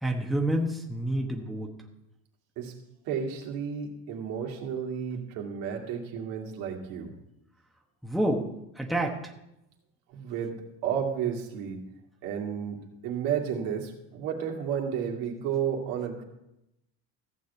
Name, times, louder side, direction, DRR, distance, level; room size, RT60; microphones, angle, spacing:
voice 1, 0.0-1.7 8.0-8.5 8.7-9.3, right 1 dB, ahead, 1 dB, 1.2 m, -28 dB
voice 2, 3.1-7.1 10.1-11.8 12.2-16.2, right 8 dB, 70° right, 1 dB, 2.4 m, -32 dB
15.0 x 5.2 x 8.1 m, 0.86 s
cardioid pair, 135°, 36 cm